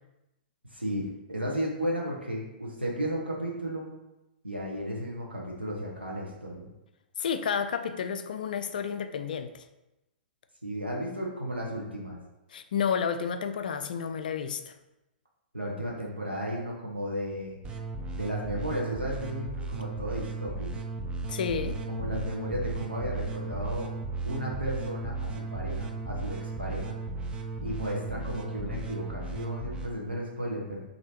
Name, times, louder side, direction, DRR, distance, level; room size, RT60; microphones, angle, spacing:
voice 1, 0.7-3.9 4.4-6.7 10.6-12.2 15.5-17.6 18.1-20.7 21.9-23.9 24.2-27.0 27.6-30.8, equal, 85° right, -3 dB, 1.0 m, -34 dB
voice 2, 7.2-9.6 12.5-14.7 21.3-21.8, left 7 dB, 55° left, 10 dB, 0.4 m, -31 dB
sound 1, 17.6-29.9, right 3 dB, 15° right, 0.4 m, -35 dB
6.0 x 2.9 x 2.8 m, 0.96 s
figure-of-eight pair, 110°, 5 cm